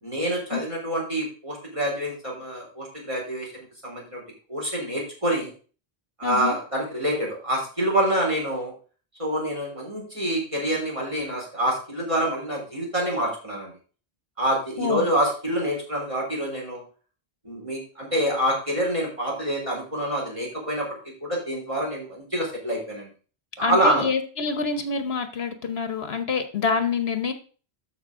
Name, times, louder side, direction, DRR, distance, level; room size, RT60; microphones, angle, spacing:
voice 1, 0.0-3.5 3.8-4.2 4.5-5.5 6.2-8.7 9.2-13.7 14.4-16.8 17.4-20.9 21.2-23.1 23.6-24.1, right 1 dB, 30° right, -3 dB, 4.2 m, -26 dB
voice 2, 6.2-6.6 14.8-15.1 23.6-27.3, left 5 dB, 70° left, 9 dB, 1.2 m, -26 dB
13.0 x 5.5 x 3.7 m, 0.38 s
omnidirectional pair, 1.1 m